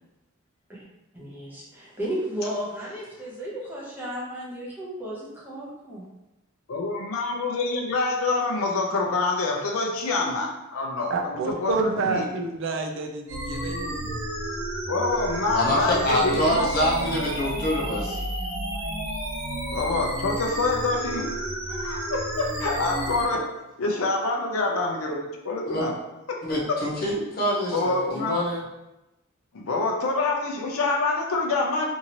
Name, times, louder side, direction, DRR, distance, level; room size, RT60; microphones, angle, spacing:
voice 1, 1.1-6.0, equal, 10° right, -6 dB, 0.7 m, -34 dB
voice 2, 6.7-12.3 14.9-16.7 19.7-21.3 21.7-23.4 23.8-26.0 26.3-26.4 27.7-28.3 29.5-31.9, left 3 dB, 80° left, 0 dB, 0.6 m, -26 dB
voice 3, 11.1-14.2, right 3 dB, 60° right, 4 dB, 0.4 m, -28 dB
sound 1, 13.3-23.3, right 1 dB, 80° right, 1.1 m, -31 dB
voice 4, 15.5-18.2 25.7-25.9 26.4-28.6, equal, 45° left, -4 dB, 0.8 m, -25 dB
2.8 x 2.6 x 2.9 m, 0.96 s
head